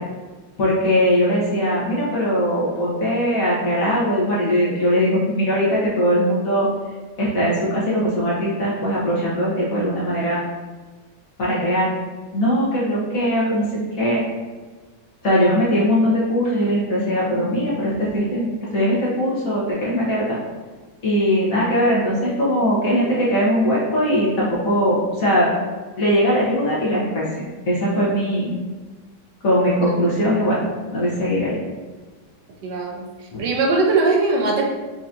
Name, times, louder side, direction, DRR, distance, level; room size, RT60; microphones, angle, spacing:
voice 1, 0.6-6.7 7.2-10.4 11.4-11.9 12.3-14.2 15.2-20.4 21.0-25.5 26.0-27.3 27.7-28.5 29.4-30.6 30.9-31.5 33.3-33.4, equal, 55° left, -6 dB, 1.5 m, -20 dB
voice 2, 32.6-34.6, right 3 dB, 75° right, -1 dB, 1.4 m, -21 dB
5.9 x 2.9 x 2.5 m, 1.3 s
omnidirectional pair, 1.9 m